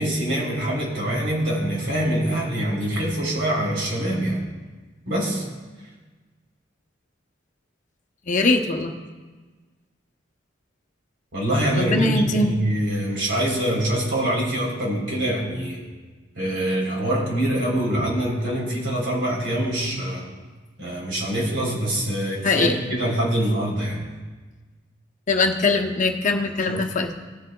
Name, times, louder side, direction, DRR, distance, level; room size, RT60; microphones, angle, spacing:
voice 1, 0.0-4.4 5.0-5.4 11.3-15.8 16.3-20.3 20.8-24.0 26.7-26.8, right 1 dB, 75° right, -3 dB, 3.5 m, -24 dB
voice 2, 8.3-8.9 11.8-12.5 22.4-22.7 25.3-27.1, left 3 dB, 40° left, 3 dB, 0.8 m, -21 dB
17.5 x 8.1 x 2.3 m, 1.3 s
head